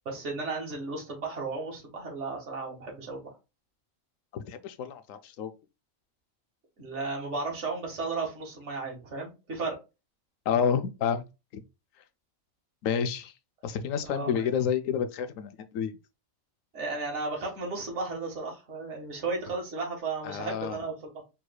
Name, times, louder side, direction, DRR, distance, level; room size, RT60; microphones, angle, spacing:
voice 1, 0.1-3.3 6.8-9.8 14.1-14.5 16.7-20.9, right 3 dB, 55° right, 1.9 m, -34 dB
voice 2, 4.3-5.5 10.5-11.2 11.5-11.6 12.8-13.3 13.6-16.0 20.2-20.8, left 7 dB, 75° left, 1.0 m, -29 dB
4.7 x 3.9 x 2.3 m
omnidirectional pair, 1.4 m